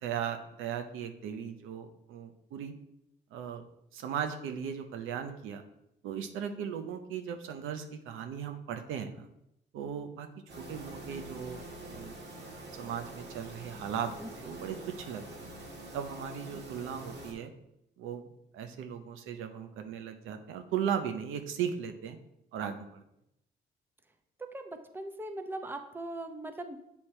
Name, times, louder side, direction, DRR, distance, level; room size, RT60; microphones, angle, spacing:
voice 1, 0.0-2.7 3.3-3.6 3.9-5.6 6.0-9.3 9.7-10.3 10.6-11.6 11.9-12.1 12.7-14.1 14.4-15.3 15.9-17.5 18.0-22.2 22.5-23.0, right 8 dB, 90° right, 6 dB, 0.6 m, -37 dB
sound 1, 10.5-17.3, right 1 dB, 60° right, 1.5 m, -45 dB
voice 2, 24.4-26.8, right 1 dB, 10° right, 6 dB, 0.6 m, -40 dB
8.1 x 2.8 x 4.3 m, 0.82 s
cardioid pair, 90°, 20 cm